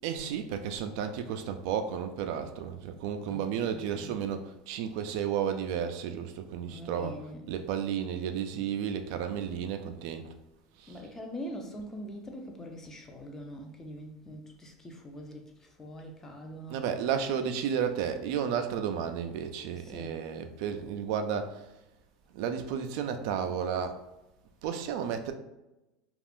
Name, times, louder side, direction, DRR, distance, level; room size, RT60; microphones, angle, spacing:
voice 1, 0.0-7.2 7.5-10.3 10.8-11.0 16.7-21.7 22.3-24.0 24.6-25.3, right 8 dB, 70° right, 0.3 m, -32 dB
voice 2, 3.3-4.2 6.7-7.5 10.9-17.1 19.7-20.2, equal, 15° left, 0.5 m, -43 dB
2.4 x 2.4 x 3.5 m
supercardioid pair, 115°, 3 cm